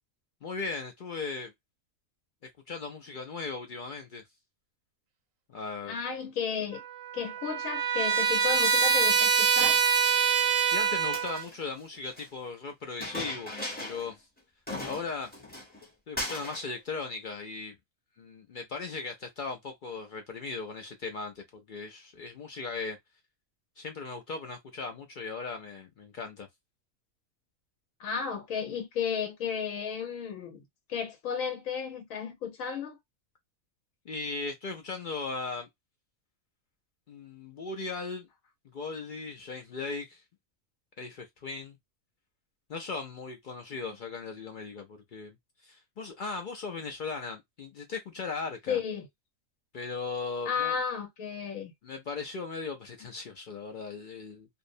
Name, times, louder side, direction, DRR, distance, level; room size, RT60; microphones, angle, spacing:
voice 1, 0.4-1.5 2.7-4.2 5.5-6.0 10.7-13.5 13.8-14.3 14.8-15.3 16.1-17.8 18.2-23.0 23.8-26.5 34.1-35.7 37.1-38.3 38.7-40.2 41.0-41.8 42.7-45.4 45.6-48.8 49.7-50.8 51.8-54.5, left 4 dB, 65° left, 0.5 m, -38 dB
voice 2, 5.9-6.8 7.1-9.8 28.0-30.6 30.9-33.0 48.7-49.1 50.5-51.7, left 6 dB, 85° left, 1.1 m, -33 dB
Trumpet, 6.7-11.5, right 7 dB, 75° right, 1.1 m, -25 dB
Chink clink, 9.6-10.4 11.0-12.3 13.0-14.1 14.4-14.5 14.7-15.9 16.2-16.7, left 1 dB, 10° left, 0.6 m, -39 dB
2.6 x 2.0 x 2.5 m
omnidirectional pair, 1.4 m